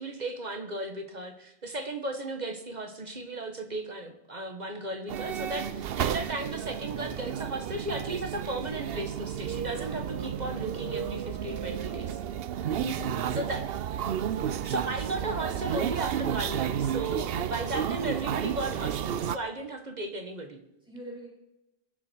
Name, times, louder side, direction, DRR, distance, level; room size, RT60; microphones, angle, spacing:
voice 1, 0.0-12.2 13.4-13.6 14.5-20.6, right 2 dB, 40° right, 5 dB, 1.7 m, -35 dB
sound 1, 5.1-19.4, right 9 dB, 70° right, 0.8 m, -32 dB
voice 2, 12.8-13.6 20.8-21.3, left 1 dB, 10° right, -3 dB, 5.4 m, -43 dB
22.5 x 8.0 x 4.6 m, 0.93 s
omnidirectional pair, 1.1 m